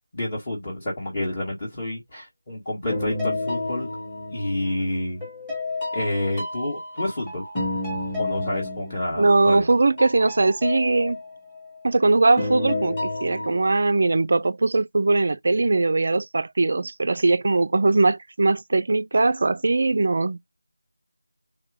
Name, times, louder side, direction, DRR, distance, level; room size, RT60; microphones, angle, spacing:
voice 1, 0.1-3.9 4.3-5.2 5.9-7.4 8.2-9.7, left 1 dB, 25° left, 1.6 m, -29 dB
sound 1, 2.9-4.8 5.2-9.7 10.0-11.9 12.4-13.6, left 2 dB, 10° left, 1.4 m, -30 dB
voice 2, 9.2-11.2 11.8-20.4, right 3 dB, 45° right, 0.3 m, -20 dB
3.4 x 2.9 x 3.4 m
figure-of-eight pair, 165°, 0 cm